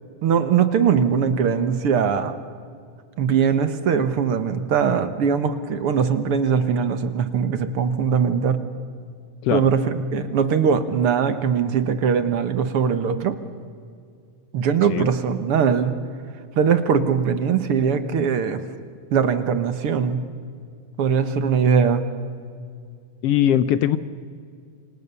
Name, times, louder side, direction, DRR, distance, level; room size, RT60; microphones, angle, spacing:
voice 1, 0.2-2.3 3.2-8.6 9.5-13.4 14.5-15.9 16.6-18.6 19.1-20.2 21.0-22.0, right 7 dB, 55° right, 11 dB, 1.8 m, -21 dB
voice 2, 23.2-24.0, left 11 dB, 80° left, 14 dB, 1.4 m, -20 dB
28.0 x 26.0 x 6.9 m, 2.2 s
omnidirectional pair, 3.6 m